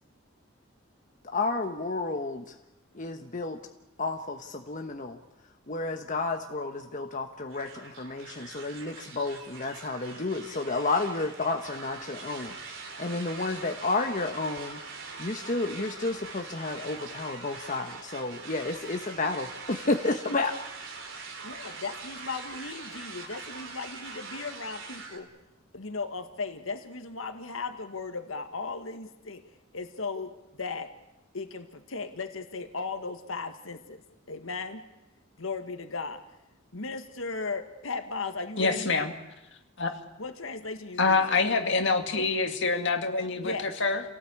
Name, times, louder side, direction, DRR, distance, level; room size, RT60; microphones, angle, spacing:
voice 1, 1.3-2.4 2.9-3.6 4.0-5.2 5.7-14.8 15.2-20.5, left 3 dB, 40° left, 4 dB, 1.2 m, -31 dB
sound 1, 7.5-25.2, right 4 dB, 65° right, 3.8 m, -43 dB
voice 2, 21.4-25.3 25.7-29.4 29.7-30.3 30.6-30.9 31.3-34.0 34.3-34.9 35.4-36.2 36.7-38.9 40.2-41.4 43.4-43.7, left 4 dB, 80° left, 7 dB, 1.8 m, -36 dB
voice 3, 38.6-39.1 39.8-40.0 41.0-44.0, left 4 dB, 60° left, 5 dB, 2.3 m, -26 dB
28.0 x 18.0 x 8.5 m, 0.96 s
head